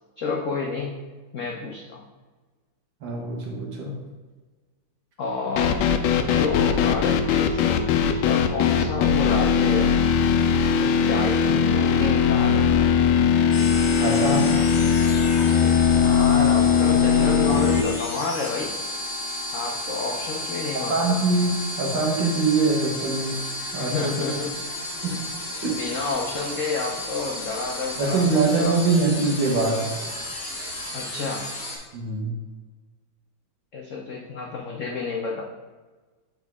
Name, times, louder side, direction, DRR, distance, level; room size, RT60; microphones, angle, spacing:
voice 1, 0.2-1.0 1.3-2.0 5.2-5.8 6.2-9.9 10.6-12.9 15.4-18.7 19.5-21.1 23.8-24.5 25.6-28.8 30.9-31.5 33.7-35.4, left 4 dB, 90° left, 0 dB, 0.6 m, -30 dB
voice 2, 3.0-3.9 14.0-14.5 20.7-23.4 23.7-24.3 25.0-25.2 25.6-25.8 28.0-29.9 31.9-32.3, right 3 dB, 65° right, -1 dB, 1.9 m, -23 dB
sound 1, 5.6-17.8, left 7 dB, 75° left, 1.0 m, -20 dB
sound 2, 13.5-31.8, left 2 dB, 45° left, 2.1 m, -33 dB
8.1 x 4.5 x 3.5 m, 1.3 s
omnidirectional pair, 2.2 m